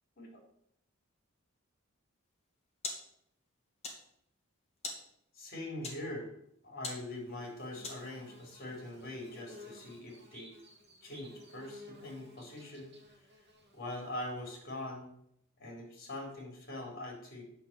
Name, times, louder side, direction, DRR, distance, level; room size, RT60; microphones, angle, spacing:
sound 1, 2.2-8.3, left 3 dB, 35° left, 2.5 m, -47 dB
voice 1, 5.3-6.3 6.6-10.5 11.0-12.9 13.7-15.1 15.6-17.4, left 1 dB, 50° left, 1 dB, 4.2 m, -43 dB
Bird / Buzz, 6.9-14.6, left 2 dB, 60° right, 2.7 m, -56 dB
10.0 x 5.8 x 8.3 m, 0.72 s
head